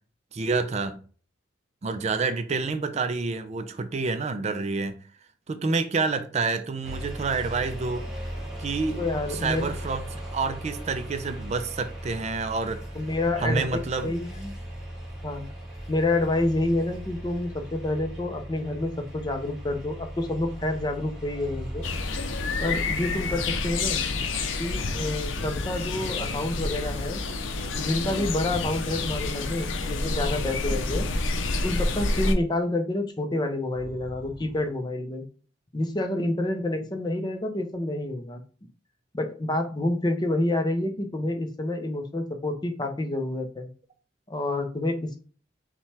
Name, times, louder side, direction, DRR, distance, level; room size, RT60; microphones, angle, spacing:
voice 1, 0.3-1.0 1.8-5.0 5.5-8.1 8.6-9.0 9.3-12.8 13.4-14.1, right 4 dB, 35° right, 0.4 m, -28 dB
sound 1, 6.8-25.3, equal, 5° right, 1.7 m, -38 dB
voice 2, 9.0-9.7 12.9-13.7 14.0-14.5 15.2-15.5 15.9-21.9 22.6-24.0 24.6-27.2 27.7-31.1 31.6-35.2 35.7-38.4 39.1-43.7 44.3-45.2, left 2 dB, 20° left, 0.5 m, -28 dB
sound 2, 21.8-32.3, left 3 dB, 85° left, 0.5 m, -29 dB
sound 3, 23.2-23.7 24.0-24.4 24.7-27.1 27.5-29.4 30.8-32.2 33.6-34.7, equal, 50° left, 0.8 m, -40 dB
5.5 x 2.2 x 3.3 m
head